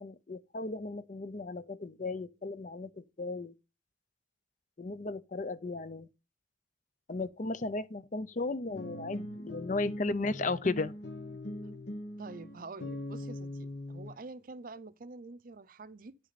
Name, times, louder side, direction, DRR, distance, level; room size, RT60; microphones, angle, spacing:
voice 1, 0.0-3.5 4.8-6.1 7.1-10.9, left 3 dB, 40° left, 0.6 m, -35 dB
sound 1, 8.7-14.1, left 1 dB, 70° left, 1.5 m, -41 dB
voice 2, 12.2-16.2, right 3 dB, 50° right, 0.6 m, -47 dB
10.0 x 6.1 x 4.0 m
head